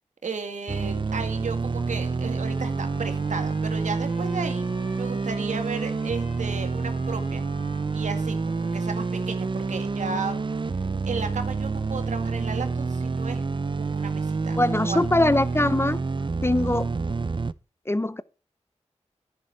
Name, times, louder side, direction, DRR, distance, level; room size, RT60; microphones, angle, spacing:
voice 1, 0.2-4.7 5.0-7.4 7.9-8.4 8.7-10.5 11.0-13.4 13.8-15.1, right 5 dB, 80° right, 2.0 m, -34 dB
sound 1, 0.7-17.5, right 4 dB, 40° right, 0.6 m, -28 dB
Trumpet, 1.7-9.6, left 2 dB, 80° left, 3.5 m, -50 dB
voice 2, 14.6-16.0 16.4-16.9 17.9-18.2, left 1 dB, 20° left, 0.7 m, -22 dB
10.0 x 10.0 x 4.5 m
cardioid pair, 40°, 12 cm